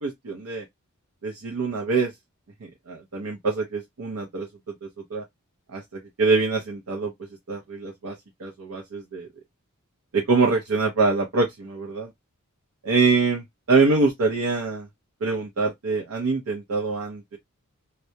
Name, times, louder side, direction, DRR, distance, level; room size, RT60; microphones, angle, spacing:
voice 1, 0.0-0.6 1.2-2.1 2.6-4.5 4.8-5.2 5.7-7.1 7.5-8.1 8.4-9.3 10.1-12.1 12.8-14.9 15.2-17.4, right 3 dB, 85° right, 0.6 m, -24 dB
2.1 x 2.1 x 2.7 m
head